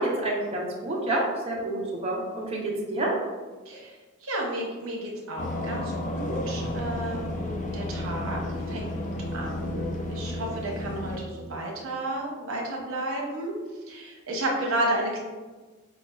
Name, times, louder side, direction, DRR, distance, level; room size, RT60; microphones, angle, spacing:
voice 1, 0.0-3.2, right 1 dB, 30° right, -4 dB, 0.5 m, -28 dB
voice 2, 4.2-8.4 8.7-8.8 9.3-13.5 13.9-15.2, right 1 dB, 75° right, -1 dB, 0.7 m, -32 dB
sound 1, 5.4-11.2, left 1 dB, 35° left, 0.3 m, -32 dB
5.5 x 2.2 x 2.2 m, 1.3 s
head